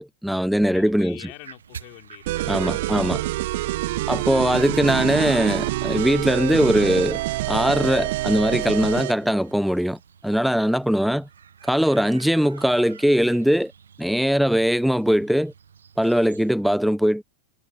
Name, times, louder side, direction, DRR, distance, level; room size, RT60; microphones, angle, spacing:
voice 1, 0.0-1.2 2.5-3.2 4.1-7.2 7.5-11.3 11.6-13.7 14.0-15.5 16.0-17.2, equal, ahead, 1.1 m, -21 dB
voice 2, 0.7-3.5 3.9-4.1 10.9-11.3 16.3-16.4, left 40 dB or more, 45° left, 5.3 m, -47 dB
sound 1, 0.9-16.5, right 7 dB, 70° right, 1.7 m, -47 dB
sound 2, 2.3-9.2, right 18 dB, 50° right, 0.5 m, -26 dB
figure-of-eight pair, 90°, 0 cm